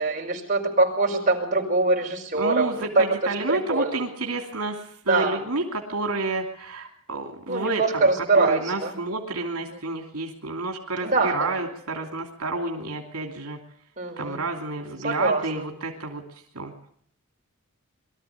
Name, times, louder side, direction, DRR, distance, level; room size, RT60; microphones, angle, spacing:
voice 1, 0.0-3.1 3.5-4.0 5.1-5.4 7.5-8.9 11.0-11.6 14.0-14.4 15.0-15.4, right 3 dB, 35° right, -1 dB, 5.7 m, -23 dB
voice 2, 2.3-13.6 14.2-16.2 16.5-16.9, right 2 dB, 80° right, 2 dB, 2.9 m, -30 dB
23.0 x 14.0 x 8.4 m, 0.65 s
head